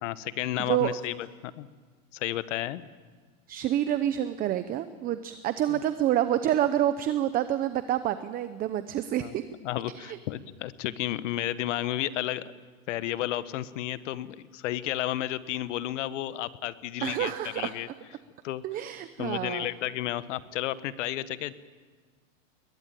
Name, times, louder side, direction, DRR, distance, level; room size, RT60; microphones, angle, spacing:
voice 1, 0.0-1.7 2.1-2.8 5.7-5.8 9.2-9.3 9.6-12.4 12.9-17.9 18.4-18.6 19.2-21.5, left 14 dB, 60° left, 15 dB, 1.3 m, -32 dB
voice 2, 0.6-0.9 3.5-9.4 9.9-10.2 17.0-17.7 18.6-19.7, right 12 dB, 20° right, 12 dB, 0.7 m, -28 dB
22.0 x 19.5 x 9.3 m, 1.5 s
supercardioid pair, 145°, 41 cm